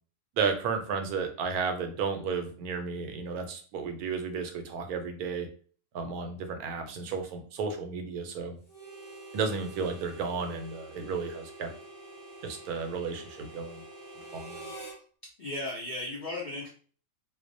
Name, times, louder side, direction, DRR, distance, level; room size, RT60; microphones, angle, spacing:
voice 1, 0.4-5.5 5.9-8.6 9.3-11.7 12.4-13.8 14.3-14.7, right 5 dB, 85° right, 5 dB, 1.1 m, -33 dB
Harmonica, 8.7-15.0, right 2 dB, 10° left, 0.7 m, -46 dB
voice 2, 15.4-16.7, left 2 dB, 60° left, -5 dB, 0.4 m, -35 dB
2.5 x 2.0 x 2.6 m, 0.41 s
omnidirectional pair, 1.5 m